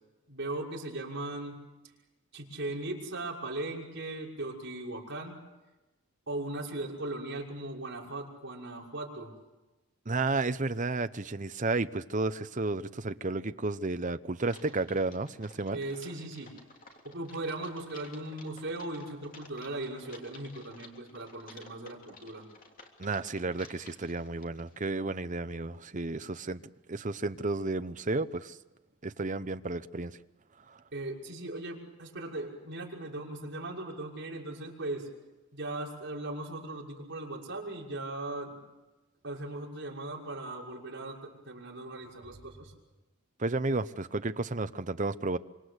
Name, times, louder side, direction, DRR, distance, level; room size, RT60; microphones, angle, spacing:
voice 1, 0.3-1.6 2.3-5.3 6.3-9.3 15.7-16.5 17.0-22.4 30.9-35.1 35.5-38.6 39.2-42.7, right 2 dB, 50° right, 6.1 m, -38 dB
voice 2, 10.1-15.8 23.0-26.6 26.9-28.6 29.0-30.1 30.7-30.8 43.4-45.4, right 3 dB, 35° right, 0.8 m, -32 dB
Typing, 14.5-24.9, left 3 dB, 40° left, 3.2 m, -54 dB
26.5 x 25.5 x 8.1 m
head